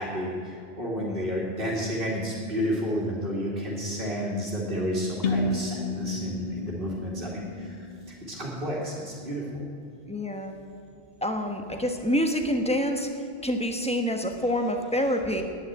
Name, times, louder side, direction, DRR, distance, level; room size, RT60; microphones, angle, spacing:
voice 1, 0.0-7.9 8.3-9.6, equal, 50° right, -6 dB, 2.7 m, -31 dB
voice 2, 1.0-1.4 10.1-10.5 11.2-15.4, equal, 5° left, 4 dB, 1.2 m, -27 dB
sound 1, 5.2-9.1, left 3 dB, 60° left, 1.1 m, -32 dB
11.0 x 9.9 x 9.3 m, 2.6 s
omnidirectional pair, 1.1 m